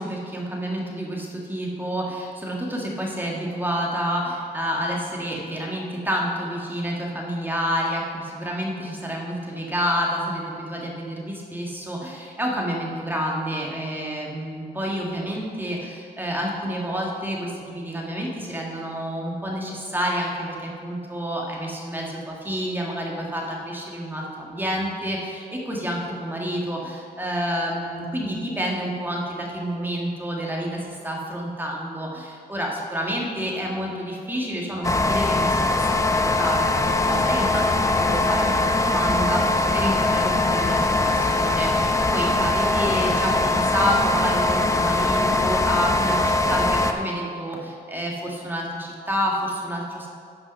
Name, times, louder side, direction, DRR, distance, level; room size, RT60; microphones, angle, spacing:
voice 1, 0.0-50.1, equal, 10° right, -2 dB, 1.8 m, -29 dB
sound 1, 34.8-46.9, left 2 dB, 20° left, 0.6 m, -21 dB
9.4 x 5.4 x 5.4 m, 2.3 s
cardioid pair, 95°, 17 cm